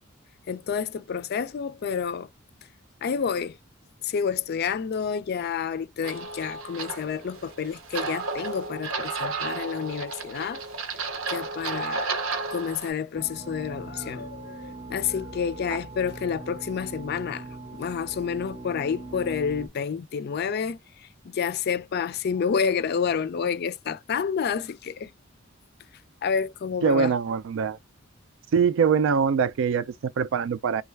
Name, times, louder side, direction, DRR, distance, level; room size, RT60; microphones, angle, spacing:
voice 1, 0.5-2.3 3.0-3.6 4.0-10.6 11.3-12.1 12.5-17.5 17.8-25.1 26.2-27.1, left 6 dB, 50° left, 0.4 m, -29 dB
sound 1, 6.0-12.9, right 4 dB, 85° right, 0.8 m, -33 dB
sound 2, 13.1-19.7, right 2 dB, 15° right, 0.6 m, -40 dB
voice 2, 26.8-27.8 28.5-30.8, right 6 dB, 65° right, 0.3 m, -23 dB
3.3 x 2.3 x 3.2 m
head